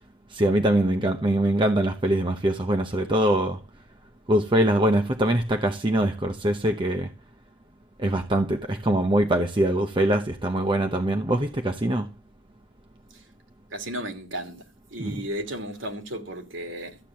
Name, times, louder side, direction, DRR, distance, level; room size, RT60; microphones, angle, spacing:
voice 1, 0.3-3.6 4.3-7.1 8.0-12.1 15.0-15.3, right 1 dB, 25° right, 0.8 m, -23 dB
voice 2, 13.7-14.6 14.9-17.0, right 1 dB, 70° right, 2.7 m, -34 dB
13.5 x 8.8 x 7.6 m
head